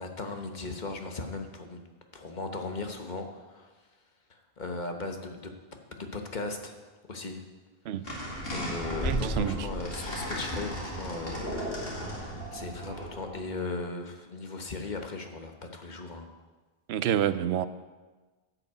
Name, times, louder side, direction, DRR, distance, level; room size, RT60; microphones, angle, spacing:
voice 1, 0.0-1.8 2.1-3.7 4.3-5.5 6.0-6.8 7.1-7.4 8.0-11.4 12.0-16.3, left 3 dB, 50° left, 4 dB, 1.2 m, -37 dB
sound 1, 8.0-13.4, equal, 65° left, 2.6 m, -35 dB
voice 2, 9.0-9.6 16.9-17.7, right 10 dB, 90° right, 14 dB, 0.8 m, -28 dB
11.0 x 6.0 x 8.1 m, 1.3 s
omnidirectional pair, 1.0 m